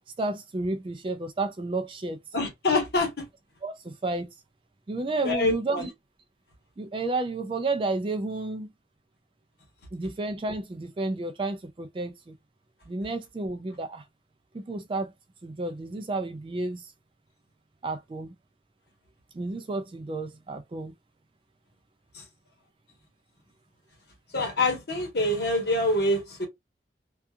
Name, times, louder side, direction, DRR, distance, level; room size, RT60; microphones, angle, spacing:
voice 1, 0.2-2.2 3.6-4.3 4.9-5.9 6.8-8.7 9.9-12.3 12.9-14.0 14.5-15.1 15.4-16.9 17.8-18.3 19.3-20.9, right 2 dB, 30° right, 0.3 m, -31 dB
voice 2, 2.3-3.2 5.2-5.9 22.1-22.2 24.3-26.5, left 2 dB, 60° left, 1.3 m, -26 dB
2.7 x 2.3 x 2.3 m
head